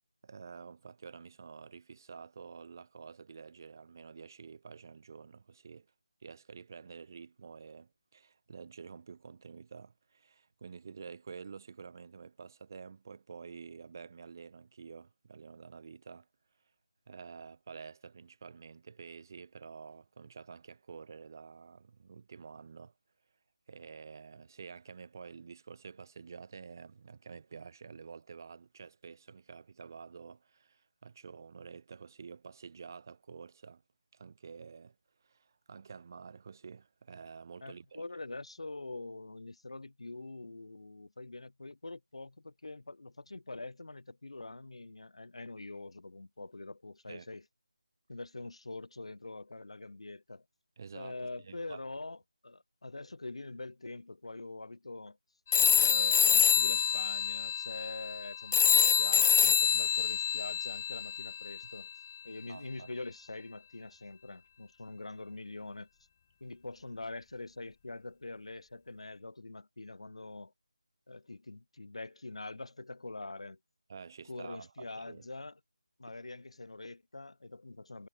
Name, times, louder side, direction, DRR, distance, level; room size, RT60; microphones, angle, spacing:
voice 1, 0.2-5.9 6.2-16.3 17.1-22.9 23.7-33.8 34.1-35.0 35.2-38.0 47.1-47.3 50.8-51.8 62.5-62.9 73.9-75.3, right 5 dB, 35° right, 5.9 m, -49 dB
voice 2, 37.6-47.4 48.1-50.4 50.9-52.2 52.4-55.2 55.6-61.9 62.2-65.9 66.4-70.5 71.1-73.6 74.3-75.6 76.0-78.1, left 2 dB, 70° left, 5.4 m, -44 dB
sound 1, 55.5-61.6, left 8 dB, 25° left, 0.7 m, -26 dB
figure-of-eight pair, 170°, 3 cm